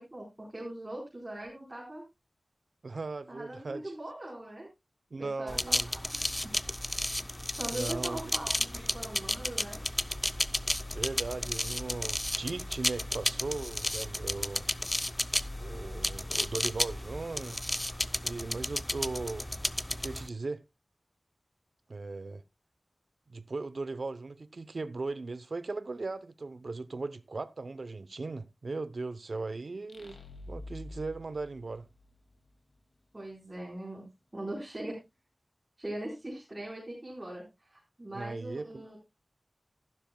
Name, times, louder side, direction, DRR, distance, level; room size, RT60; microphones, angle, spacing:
voice 1, 0.0-2.0 3.3-4.7 5.2-6.2 7.6-9.8 33.1-34.0 34.3-35.0 35.8-39.0, right 1 dB, 25° right, 4.4 m, -41 dB
voice 2, 2.8-3.9 5.1-5.9 7.7-8.3 10.9-14.7 15.6-17.6 18.2-19.5 19.9-20.6 21.9-22.4 23.3-30.2 30.5-31.9 38.1-38.8, right 3 dB, 70° right, 0.7 m, -38 dB
sound 1, 5.5-20.3, left 1 dB, 15° left, 0.5 m, -33 dB
sound 2, 29.9-32.5, left 1 dB, 75° left, 2.2 m, -47 dB
13.5 x 12.0 x 2.3 m
wide cardioid pair, 80°, 0 cm